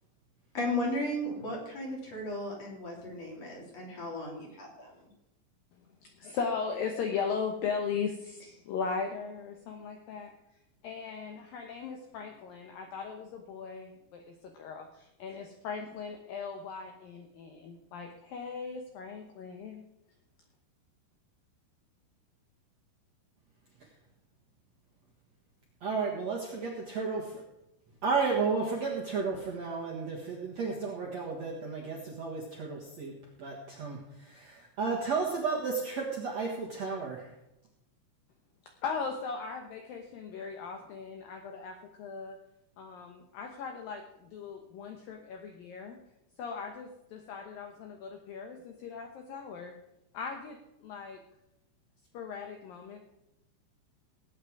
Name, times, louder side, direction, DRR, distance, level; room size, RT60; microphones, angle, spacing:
voice 1, 0.5-4.9, left 1 dB, 40° left, -2 dB, 4.0 m, -35 dB
voice 2, 6.2-10.3 10.8-19.8 38.8-42.4 42.8-46.0 46.4-49.7 50.1-51.2 52.1-53.0, left 5 dB, 70° left, 3 dB, 2.3 m, -38 dB
voice 3, 25.8-27.4 28.0-33.1 33.4-37.3, right 4 dB, 55° right, -2 dB, 2.0 m, -33 dB
18.5 x 8.9 x 4.7 m, 0.89 s
omnidirectional pair, 5.2 m